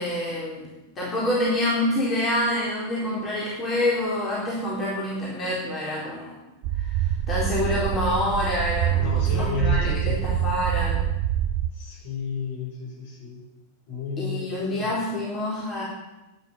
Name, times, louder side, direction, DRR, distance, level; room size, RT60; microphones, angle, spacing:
voice 1, 0.0-6.3 7.0-11.0 14.2-15.8, left 1 dB, 25° left, -4 dB, 4.3 m, -27 dB
sound 1, 6.6-11.7, right 11 dB, 45° right, 0.6 m, -25 dB
voice 2, 9.0-10.2 11.7-13.4 13.9-14.7, left 5 dB, 50° left, 0 dB, 6.9 m, -31 dB
12.5 x 10.0 x 9.8 m, 0.98 s
figure-of-eight pair, 90°, 0 cm